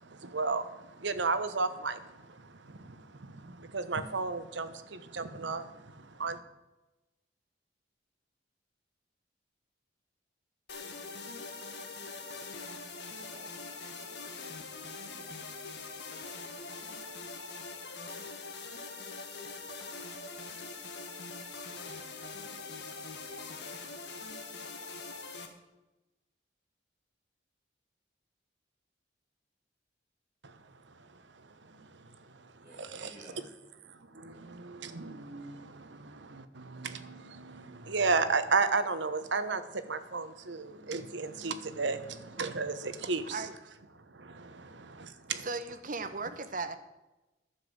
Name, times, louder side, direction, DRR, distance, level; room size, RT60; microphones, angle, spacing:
voice 1, 0.0-6.4 30.4-30.6 31.4-33.5 33.9-43.4 44.1-45.5, right 4 dB, 80° right, 11 dB, 1.0 m, -34 dB
sound 1, 10.7-25.5, left 4 dB, 65° left, 1.8 m, -43 dB
voice 2, 13.2-14.4 32.6-33.4, equal, 15° right, -5 dB, 4.8 m, -55 dB
voice 3, 43.3-43.8 45.3-46.8, right 3 dB, 45° right, 11 dB, 0.9 m, -37 dB
11.5 x 7.3 x 7.8 m, 1.0 s
head